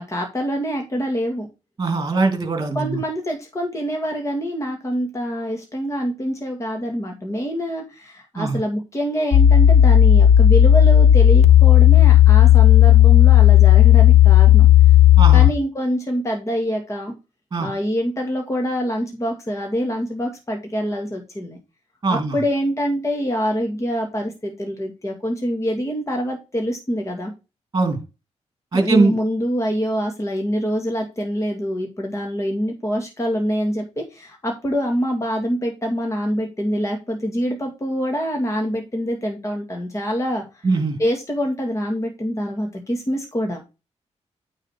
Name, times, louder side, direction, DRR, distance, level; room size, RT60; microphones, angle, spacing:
voice 1, 0.0-1.5 2.7-14.7 15.3-17.1 17.6-21.6 22.1-27.3 28.7-40.6 41.0-43.6, equal, 25° left, 2.1 m, -25 dB
voice 2, 1.8-3.0 8.4-8.6 15.2-15.5 17.5-17.7 22.0-22.3 27.7-28.0 28.7-29.2 40.6-41.0, right 3 dB, 35° right, 3.0 m, -20 dB
sound 1, 9.3-15.5, left 11 dB, 70° left, 0.7 m, -11 dB
9.1 x 4.1 x 4.5 m
wide cardioid pair, 110°, 12 cm